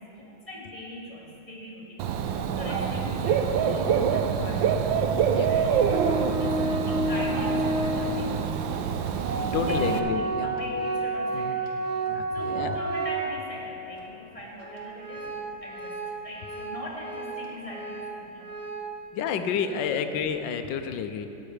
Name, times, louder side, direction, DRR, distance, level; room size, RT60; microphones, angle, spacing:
voice 1, 0.0-4.7 5.0-8.4 9.5-18.5 19.1-19.3 19.6-19.8, left 1 dB, 15° left, -5 dB, 2.0 m, -41 dB
Dog / Bird, 2.0-10.0, right 7 dB, 80° right, 1.3 m, -26 dB
Organ, 5.9-8.2 8.9-9.0 9.2-13.6 14.0-14.1 14.6-18.9, right 2 dB, 40° right, 1.5 m, -31 dB
voice 2, 9.5-10.6 11.3-11.6 12.1-12.8 17.0-17.1 19.1-21.3, left 7 dB, 75° left, 8 dB, 1.3 m, -30 dB
13.5 x 9.1 x 4.9 m, 3.0 s
omnidirectional pair, 2.1 m